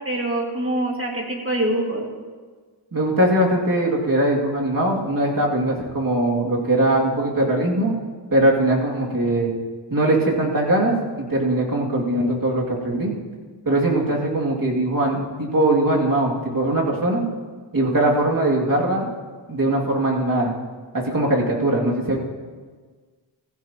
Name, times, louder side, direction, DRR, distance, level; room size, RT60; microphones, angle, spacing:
voice 1, 0.0-2.0 17.8-18.0, right 1 dB, 25° right, -1 dB, 2.1 m, -25 dB
voice 2, 2.9-7.9 8.3-9.5 9.9-13.1 13.7-17.2 17.7-19.1 19.5-20.5 20.9-22.2, right 1 dB, 45° right, -3 dB, 2.6 m, -21 dB
16.5 x 15.0 x 3.0 m, 1.5 s
wide cardioid pair, 75°, 47 cm